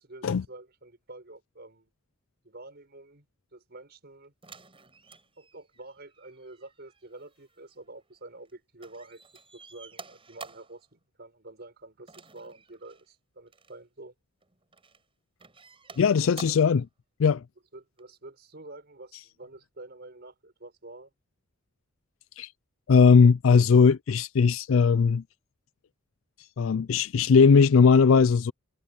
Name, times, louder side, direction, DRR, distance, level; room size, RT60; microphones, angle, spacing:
voice 1, 0.0-1.9 2.4-3.3 3.5-4.3 5.4-9.2 9.5-14.1 16.5-16.6 17.7-21.1, right 2 dB, 55° right, 5.4 m, -48 dB
sound 1, 4.4-8.5 8.8-10.8 12.1-13.1 13.5-13.7 14.4-15.0 15.4-16.8 18.0-18.1, right 4 dB, 25° right, 5.7 m, -50 dB
voice 2, 16.0-16.8 17.2-17.4 22.4-22.5 22.9-25.2 26.6-28.5, left 5 dB, 75° left, 0.4 m, -19 dB
head